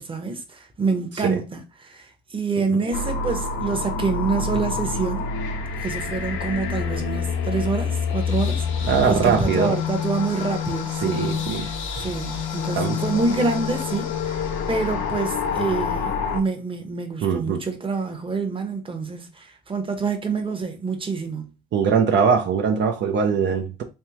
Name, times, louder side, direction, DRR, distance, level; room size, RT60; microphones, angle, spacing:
voice 1, 0.0-5.3 5.8-14.4 14.7-21.5, right 4 dB, 25° right, 0.9 m, -27 dB
sound 1, 2.9-16.4, left 5 dB, 80° left, 0.7 m, -27 dB
voice 2, 8.8-9.8 11.0-11.7 12.7-13.0 17.2-17.6 21.7-23.8, right 6 dB, 65° right, 0.6 m, -21 dB
3.5 x 3.1 x 2.9 m
cardioid pair, 90°, 20 cm